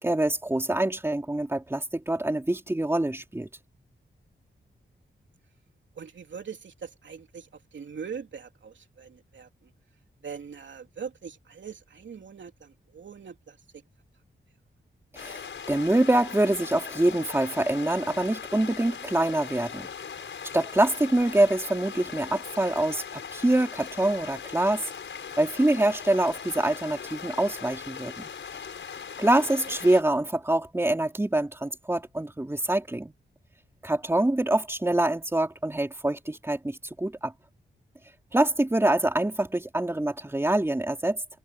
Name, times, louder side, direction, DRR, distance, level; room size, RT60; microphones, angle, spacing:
voice 1, 0.0-3.5 15.1-15.4 15.7-19.9 20.5-24.8 25.4-28.3 29.2-33.1 33.8-37.3 38.3-41.2, right 1 dB, 10° right, 3.4 m, -25 dB
voice 2, 6.0-9.7 10.2-13.6 22.2-22.3 29.7-29.8, right 6 dB, 75° right, 3.1 m, -42 dB
sound 1, 15.2-30.0, left 6 dB, 85° left, 5.5 m, -40 dB
wide cardioid pair, 115°, 19 cm